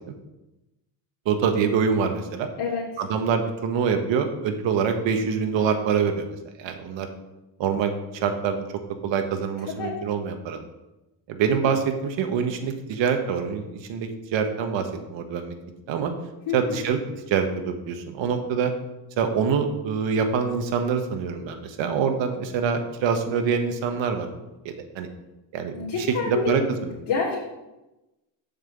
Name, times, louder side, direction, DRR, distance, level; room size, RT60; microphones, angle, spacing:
voice 1, 1.2-2.5 3.0-6.3 6.6-7.1 7.6-8.6 9.0-10.6 11.3-15.5 15.9-16.1 16.5-17.0 17.3-18.7 19.2-24.3 24.6-25.1 25.5-26.9, right 6 dB, 80° right, 6 dB, 1.4 m, -25 dB
voice 2, 9.7-10.0 16.5-16.8 25.7-26.7 27.1-27.4, left 5 dB, 70° left, -8 dB, 2.8 m, -27 dB
7.2 x 5.7 x 7.3 m, 1.0 s
cardioid pair, 100°, 44 cm